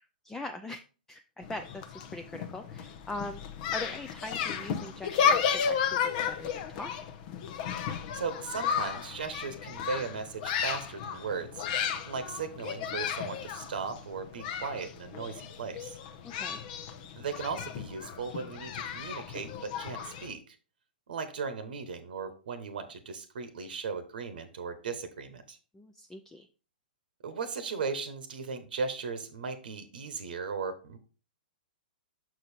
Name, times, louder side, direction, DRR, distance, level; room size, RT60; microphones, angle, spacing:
voice 1, 0.2-0.8 1.1-3.4 3.7-7.1 16.2-16.6 25.7-26.5, left 2 dB, 10° left, 6 dB, 0.4 m, -41 dB
sound 1, 1.4-20.3, left 7 dB, 50° left, 0.8 m, -33 dB
voice 2, 8.1-11.6 12.0-16.0 17.1-20.5 21.1-25.6 27.2-31.0, right 5 dB, 70° right, 10 dB, 1.0 m, -37 dB
6.2 x 5.0 x 4.2 m, 0.35 s
hypercardioid pair, 115°, 5 cm